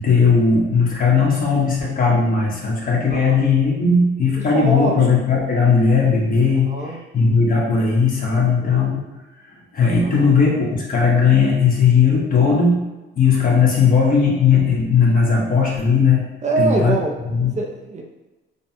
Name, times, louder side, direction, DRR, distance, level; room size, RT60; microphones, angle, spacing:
voice 1, 0.0-6.7 7.1-9.0 9.7-12.8 13.2-16.2 16.6-16.9 17.3-17.5, left 5 dB, 45° left, -4 dB, 1.3 m, -17 dB
voice 2, 4.5-5.0 6.5-7.0 8.3-8.9 10.0-10.3 16.4-17.2 17.6-18.0, right 3 dB, 35° right, 1 dB, 0.6 m, -24 dB
5.3 x 2.2 x 2.8 m, 1.1 s
cardioid pair, 90°, 20 cm